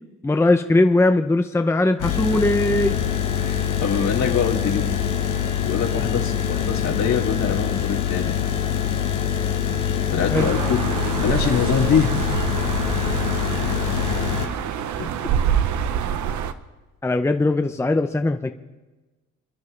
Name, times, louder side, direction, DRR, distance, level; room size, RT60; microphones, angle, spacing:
voice 1, 0.2-3.0 10.3-10.5 17.0-18.5, left 2 dB, 10° left, 7 dB, 0.7 m, -19 dB
sound 1, 2.0-14.5, left 9 dB, 90° left, 1.7 m, -24 dB
voice 2, 3.4-4.9 5.6-8.4 10.1-10.8 11.2-12.1 15.0-15.1, left 7 dB, 70° left, 0 dB, 2.7 m, -24 dB
sound 2, 10.3-16.5, right 8 dB, 70° right, 0.9 m, -26 dB
27.5 x 10.5 x 3.3 m, 1.1 s
cardioid pair, 90°, 30 cm